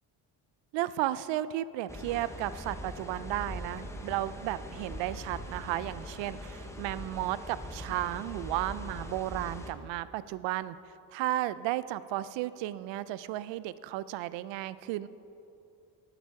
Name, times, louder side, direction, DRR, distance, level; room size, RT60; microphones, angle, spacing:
voice 1, 0.7-10.8 11.1-15.1, right 14 dB, 80° right, 17 dB, 0.5 m, -34 dB
sound 1, 1.9-9.7, left 1 dB, 5° left, 0.9 m, -42 dB
11.0 x 9.0 x 4.7 m, 2.7 s
cardioid pair, 110°, 44 cm